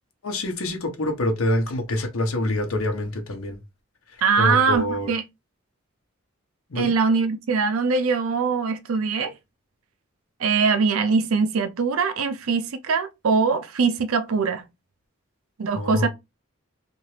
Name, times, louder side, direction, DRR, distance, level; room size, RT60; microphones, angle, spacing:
voice 1, 0.2-3.6 4.1-5.1 6.7-6.9 15.7-16.1, left 1 dB, 90° left, 0.8 m, -26 dB
voice 2, 4.2-5.2 6.8-9.3 10.4-14.6 15.6-16.1, right 5 dB, 85° right, 0.5 m, -22 dB
2.8 x 2.5 x 3.1 m
head